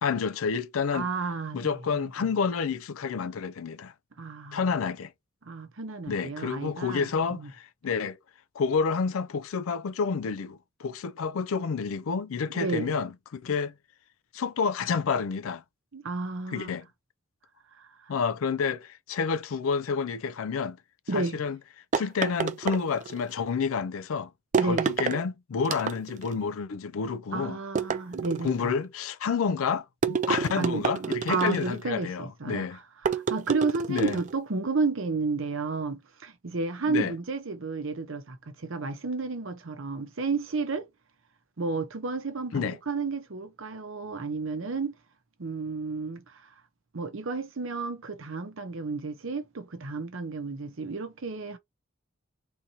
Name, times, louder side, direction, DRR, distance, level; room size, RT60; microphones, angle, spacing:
voice 1, 0.0-1.1 1.5-3.9 4.5-5.1 6.1-8.2 8.6-13.7 14.3-15.6 16.5-16.9 18.1-20.8 21.1-21.6 21.9-24.3 24.6-27.6 28.4-32.8 33.9-34.2 36.8-37.1 42.5-42.8, left 5 dB, 80° left, 0.4 m, -29 dB
voice 2, 0.9-2.1 4.2-4.7 5.4-7.5 12.5-12.9 15.9-16.8 17.8-18.1 21.1-21.4 24.5-24.9 27.3-28.7 30.5-32.8 33.1-40.9 41.6-44.9 45.4-46.5 46.9-51.6, right 4 dB, 70° right, 0.7 m, -32 dB
sound 1, 21.9-23.3 24.5-25.2 25.6-26.3 27.8-28.7 30.0-31.8 33.0-34.3, right 5 dB, 35° right, 0.3 m, -29 dB
3.9 x 2.7 x 2.8 m
head